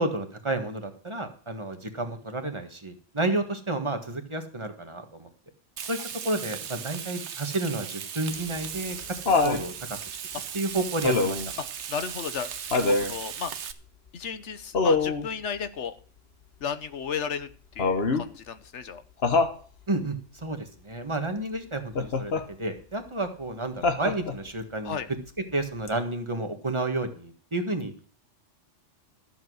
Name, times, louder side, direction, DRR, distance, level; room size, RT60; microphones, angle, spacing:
voice 1, 0.0-5.3 5.9-6.0 6.2-9.0 9.2-10.2 10.5-11.4 19.9-25.0 25.5-28.1, right 2 dB, 25° right, 6 dB, 1.7 m, -31 dB
Frying (food), 5.8-13.7, right 8 dB, 70° right, 1.1 m, -37 dB
Laughter, 8.3-9.7 11.0-11.5 12.7-13.2 14.7-15.3 17.8-18.3 19.2-19.6 22.0-22.5 23.8-24.5 25.9-26.0, left 3 dB, 55° left, 1.4 m, -24 dB
voice 2, 11.9-13.5 14.1-15.9 16.6-17.5 17.7-19.0 24.8-25.1, left 7 dB, 70° left, 11 dB, 1.2 m, -34 dB
13.5 x 7.6 x 6.3 m, 0.42 s
omnidirectional pair, 1.2 m